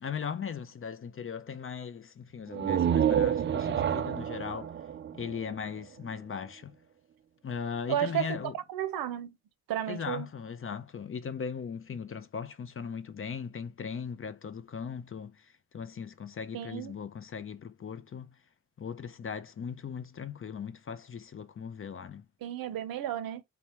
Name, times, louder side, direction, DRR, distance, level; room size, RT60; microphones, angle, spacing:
voice 1, 0.0-4.7 5.1-6.7 7.4-8.5 9.9-15.5 15.7-18.3 18.8-22.2, left 6 dB, 35° left, 0.6 m, -38 dB
sound 1, 2.5-6.1, right 9 dB, 30° right, 0.4 m, -29 dB
voice 2, 7.9-8.3 8.7-9.3 9.7-10.3 16.5-16.9 22.4-23.4, right 11 dB, 65° right, 0.7 m, -32 dB
4.2 x 2.1 x 4.4 m
hypercardioid pair, 40°, 38 cm